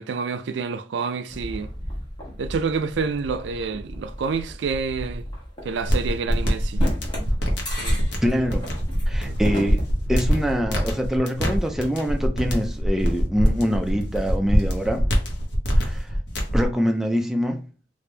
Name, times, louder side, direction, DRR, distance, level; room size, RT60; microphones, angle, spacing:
voice 1, 0.0-1.7 2.4-5.3 5.6-6.9 7.7-8.0 9.3-9.8, right 5 dB, 80° right, 0.4 m, -28 dB
sound 1, 1.3-10.5, equal, 25° left, 1.2 m, -36 dB
sound 2, 5.8-16.7, equal, 80° left, 1.0 m, -24 dB
voice 2, 8.2-8.6 9.1-9.8 10.1-15.0 15.7-16.1 16.5-17.6, equal, ahead, 0.3 m, -24 dB
3.2 x 2.5 x 3.2 m
head